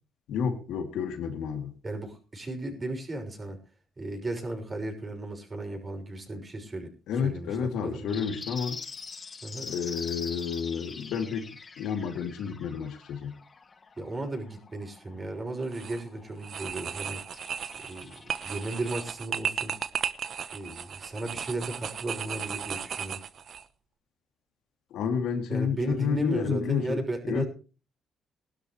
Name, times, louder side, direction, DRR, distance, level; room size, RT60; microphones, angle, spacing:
voice 1, 0.3-1.7 7.1-8.8 9.6-11.5 11.8-13.3 24.9-27.4, left 6 dB, 85° left, 2.6 m, -30 dB
voice 2, 1.8-3.6 4.0-6.9 7.2-7.5 7.8-8.1 9.4-9.7 14.0-17.2 17.9-19.7 20.5-23.2 25.5-27.4, right 2 dB, 30° right, 6.2 m, -35 dB
sound 1, 8.1-19.1, left 4 dB, 35° left, 1.4 m, -44 dB
sound 2, 15.6-16.0 16.4-23.6, right 7 dB, 60° right, 1.0 m, -35 dB
20.0 x 12.5 x 3.1 m
cardioid pair, 90°, 0 cm